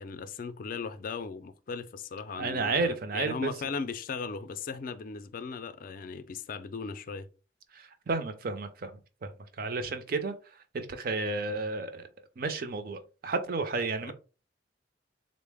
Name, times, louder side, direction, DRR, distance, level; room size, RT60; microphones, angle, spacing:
voice 1, 0.0-7.3, left 5 dB, 45° left, 0.4 m, -37 dB
voice 2, 2.4-3.5 7.7-9.3 9.6-10.3 10.7-12.1 12.4-14.1, right 3 dB, 50° right, 0.5 m, -32 dB
3.8 x 2.0 x 3.4 m
head